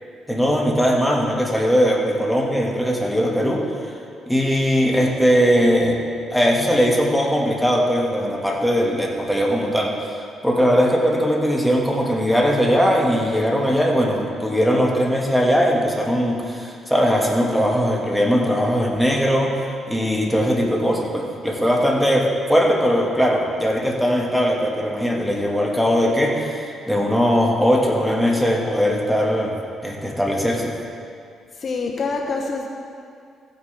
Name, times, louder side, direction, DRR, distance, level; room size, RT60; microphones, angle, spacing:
voice 1, 0.3-3.6 4.3-6.0 6.3-29.6 29.8-30.8, equal, ahead, -2 dB, 1.8 m, -20 dB
voice 2, 31.6-32.7, left 4 dB, 45° left, 2 dB, 0.9 m, -25 dB
15.5 x 9.3 x 3.4 m, 2.3 s
cardioid pair, 90°, 0 cm